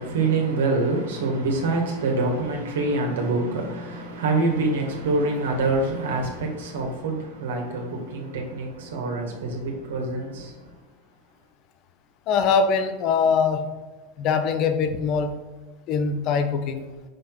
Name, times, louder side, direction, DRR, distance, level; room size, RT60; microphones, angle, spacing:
voice 1, 0.0-10.6, right 3 dB, 85° right, 1.7 m, -25 dB
voice 2, 12.3-13.8 14.2-15.4 15.9-17.0, left 5 dB, 45° left, 0.8 m, -23 dB
6.2 x 4.1 x 4.6 m
supercardioid pair, 120°, 0 cm